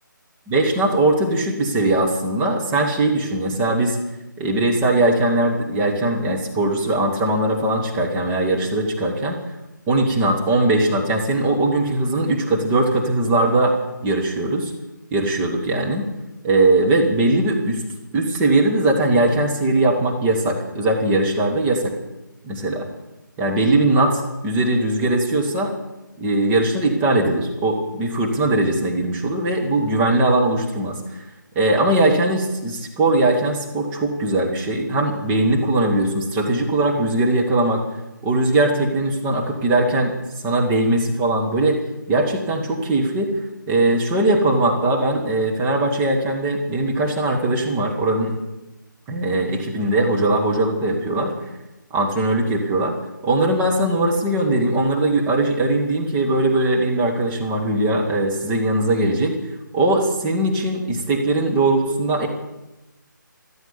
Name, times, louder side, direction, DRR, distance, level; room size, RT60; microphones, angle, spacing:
voice 1, 0.5-4.0 4.4-9.4 9.9-13.7 14.0-14.7 15.1-16.1 16.4-17.8 18.1-21.9 22.4-22.9 23.4-25.7 26.2-31.0 31.5-37.8 38.2-40.1 40.4-41.8 42.1-43.3 43.7-48.3 49.1-51.3 51.9-52.9 53.2-59.4 59.7-62.3, right 2 dB, 10° right, -1 dB, 1.7 m, -20 dB
13.5 x 13.0 x 7.1 m, 0.97 s
figure-of-eight pair, 150°, 11 cm